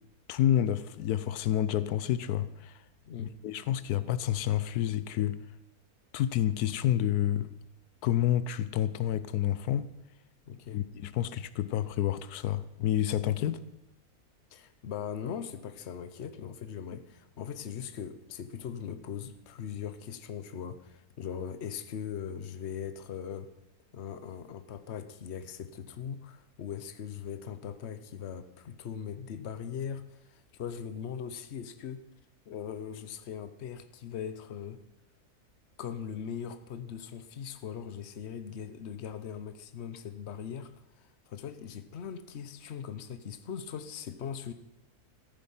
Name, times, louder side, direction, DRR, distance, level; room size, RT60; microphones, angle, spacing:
voice 1, 0.3-2.8 3.2-5.4 6.1-7.5 8.0-9.9 10.7-13.6, left 11 dB, 85° left, 1.1 m, -29 dB
voice 2, 10.5-10.8 14.5-23.5 23.9-32.0 32.5-34.8 35.8-40.7 41.0-44.5, left 8 dB, 50° left, 1.0 m, -40 dB
14.0 x 11.0 x 5.6 m
omnidirectional pair, 1.6 m